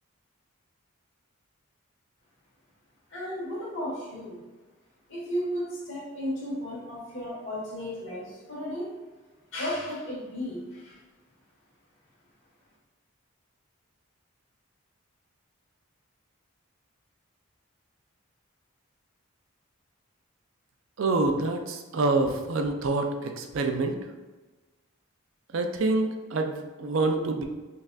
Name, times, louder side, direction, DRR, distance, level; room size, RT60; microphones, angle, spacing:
voice 1, 3.1-4.4 5.1-8.9 9.5-11.0, equal, 60° left, -7 dB, 1.5 m, -34 dB
voice 2, 21.0-23.9 25.5-27.4, right 3 dB, 65° right, 5 dB, 0.4 m, -26 dB
5.3 x 2.5 x 2.4 m, 1.2 s
head